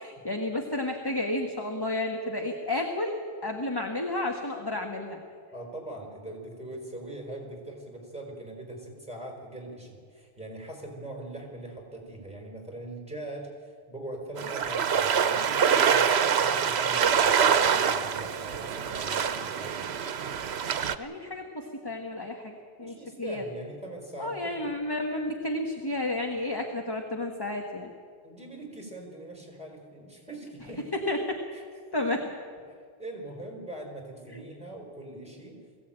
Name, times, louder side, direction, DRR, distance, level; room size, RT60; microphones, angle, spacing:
voice 1, 0.0-5.2 21.0-22.5 22.8-23.4 24.2-27.9 31.1-31.4 31.9-32.3 34.3-34.4, left 1 dB, 20° left, 2 dB, 1.5 m, -31 dB
voice 2, 5.5-19.9 22.8-24.7 28.2-30.8 31.5-31.6 33.0-35.6, right 1 dB, 5° right, 0 dB, 4.8 m, -41 dB
sound 1, 14.4-21.0, right 7 dB, 80° right, 1.1 m, -25 dB
21.5 x 16.0 x 8.9 m, 2.1 s
omnidirectional pair, 1.1 m